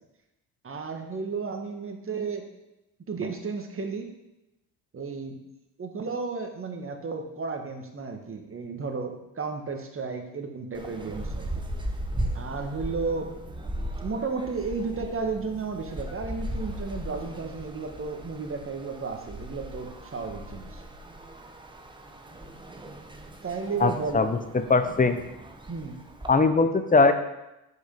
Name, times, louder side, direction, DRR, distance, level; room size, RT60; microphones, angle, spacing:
voice 1, 0.6-2.5 3.1-4.1 4.9-5.3 5.8-11.6 12.3-13.3 14.0-20.8 23.4-24.3 25.7-26.0, right 4 dB, 25° right, 4 dB, 1.4 m, -33 dB
sound 1, 10.7-26.3, right 1 dB, 10° right, 0.9 m, -37 dB
voice 2, 23.8-25.2 26.3-27.1, left 4 dB, 20° left, 9 dB, 0.7 m, -21 dB
6.4 x 5.2 x 5.2 m, 0.93 s
supercardioid pair, 75°, 47 cm